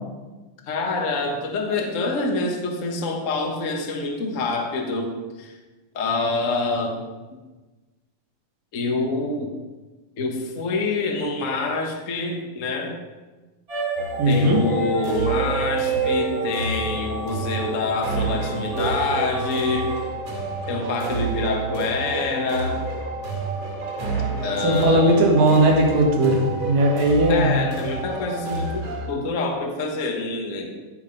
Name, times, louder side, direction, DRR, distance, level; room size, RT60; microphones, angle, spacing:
voice 1, 0.7-5.6 5.9-7.0 7.3-7.4 8.7-9.6 10.2-13.0 14.2-20.0 20.7-22.8 24.4-25.2 27.3-30.8, left 3 dB, 60° left, 2 dB, 0.8 m, -26 dB
sound 1, 13.7-18.0 18.7-20.0, right 5 dB, 30° right, 2.0 m, -29 dB
sound 2, 14.0-29.1, right 3 dB, 60° right, 3.6 m, -29 dB
voice 2, 14.2-14.6 24.6-27.7, right 1 dB, 80° right, 0 dB, 3.3 m, -18 dB
16.0 x 5.7 x 5.2 m, 1.2 s
omnidirectional pair, 3.8 m